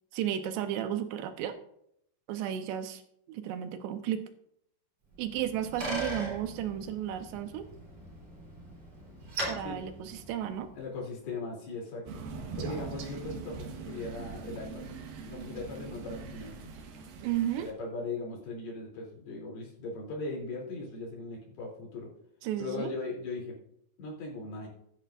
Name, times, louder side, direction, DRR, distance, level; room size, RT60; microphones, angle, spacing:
voice 1, 0.1-1.6 2.3-3.0 3.3-4.2 5.2-7.7 9.5-10.7 17.2-17.7 22.4-22.9, right 11 dB, 90° right, 8 dB, 3.0 m, -33 dB
Bicycle, 5.1-10.8, right 1 dB, 35° right, 4.7 m, -40 dB
voice 2, 10.7-12.2 12.6-14.8 15.3-16.7 17.6-22.1 22.6-23.6 24.0-24.7, left 3 dB, 65° left, -2 dB, 5.0 m, -39 dB
Crow, 12.1-17.7, right 4 dB, 65° right, 2.8 m, -41 dB
15.5 x 11.5 x 2.6 m, 0.72 s
omnidirectional pair, 4.8 m